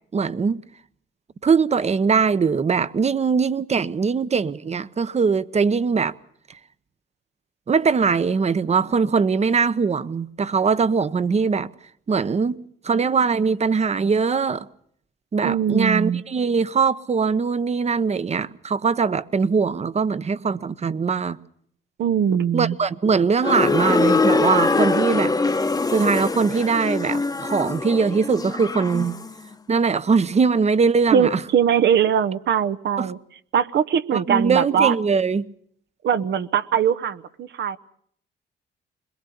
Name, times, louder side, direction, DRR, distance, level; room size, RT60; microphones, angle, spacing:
voice 1, 0.1-0.6 1.4-6.1 7.7-11.7 12.1-12.6 12.8-14.7 15.3-21.4 22.5-25.3 25.9-29.2 29.7-31.4 33.0-33.1 34.1-35.5, right 5 dB, 35° right, 0.9 m, -21 dB
voice 2, 15.4-16.2 22.0-22.8 31.1-33.2 33.5-34.9 36.0-37.8, right 8 dB, 65° right, 1.0 m, -21 dB
sound 1, 23.4-29.3, left 3 dB, 20° left, 1.0 m, -23 dB
22.0 x 22.0 x 7.0 m
cardioid pair, 90°, 20 cm